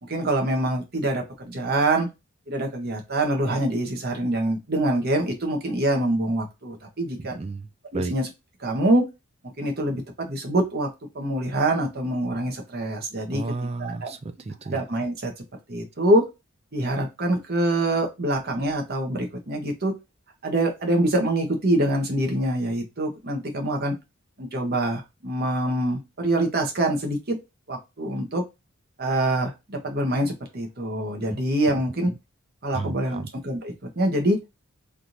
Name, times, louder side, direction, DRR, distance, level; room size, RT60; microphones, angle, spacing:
voice 1, 0.0-2.1 2.5-7.3 7.9-8.3 8.6-9.0 9.4-10.9 11.1-13.4 13.8-14.1 14.7-16.2 16.7-19.9 20.4-23.9 24.4-27.4 27.7-28.4 29.0-32.1 32.6-34.4, right 1 dB, 45° right, 1.0 m, -25 dB
voice 2, 7.2-7.7 7.9-8.1 13.3-14.8 32.7-33.3, right 3 dB, 25° right, 0.4 m, -32 dB
3.5 x 2.5 x 2.8 m
head